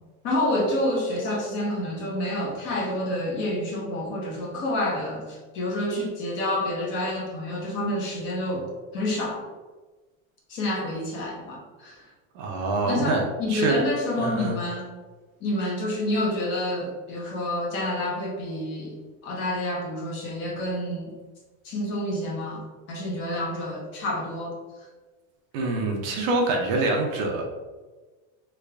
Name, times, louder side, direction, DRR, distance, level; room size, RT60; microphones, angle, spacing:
voice 1, 0.2-9.5 10.5-12.1 12.8-14.9 15.4-19.0 19.2-21.1 21.6-24.5, left 1 dB, 30° left, -2 dB, 0.6 m, -28 dB
voice 2, 12.3-13.2 13.5-13.8 14.2-14.6 25.5-27.4, right 2 dB, 45° right, 0 dB, 0.5 m, -25 dB
3.3 x 2.4 x 3.3 m, 1.3 s
cardioid pair, 175°, 38 cm